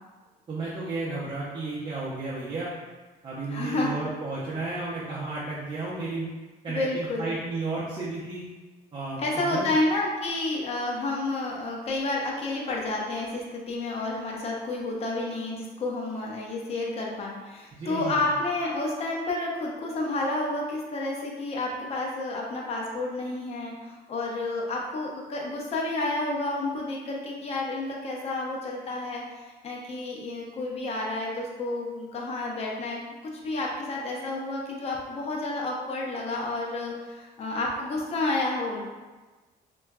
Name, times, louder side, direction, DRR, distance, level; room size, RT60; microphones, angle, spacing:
voice 1, 0.5-2.7 3.2-6.3 6.6-8.4 8.9-9.7 17.7-18.2, right 3 dB, 30° right, -8 dB, 0.6 m, -33 dB
voice 2, 3.5-4.0 6.7-7.3 9.2-38.8, left 2 dB, 40° left, -2 dB, 0.6 m, -30 dB
3.7 x 2.3 x 2.3 m, 1.3 s
cardioid pair, 110°, 17 cm